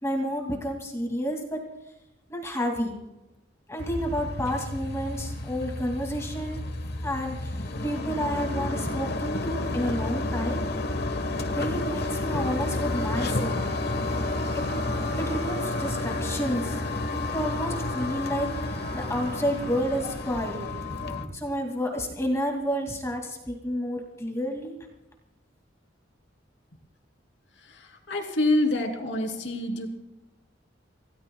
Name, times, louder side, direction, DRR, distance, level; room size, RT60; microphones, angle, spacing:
voice 1, 0.0-1.6 2.3-3.0 3.7-6.6 7.0-10.7 11.5-13.6 14.5-14.6 15.2-24.8, equal, 15° left, 2 dB, 2.4 m, -30 dB
sound 1, 3.8-21.3, left 2 dB, 60° left, 1.3 m, -30 dB
voice 2, 27.6-29.9, left 2 dB, 80° left, 2 dB, 3.0 m, -27 dB
28.0 x 17.5 x 2.3 m, 0.96 s
head